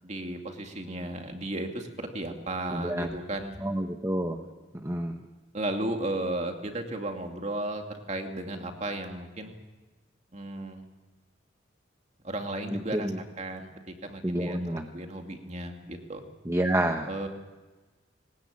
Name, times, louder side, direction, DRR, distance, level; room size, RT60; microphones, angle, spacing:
voice 1, 0.0-3.6 5.5-9.5 10.3-10.8 12.2-16.2 17.1-17.3, right 1 dB, 35° right, 4 dB, 2.4 m, -35 dB
voice 2, 2.7-3.1 3.6-4.4 4.8-5.2 12.7-13.2 14.2-14.9 16.5-17.1, right 1 dB, 15° right, 4 dB, 1.0 m, -29 dB
21.0 x 19.5 x 8.6 m, 1.2 s
head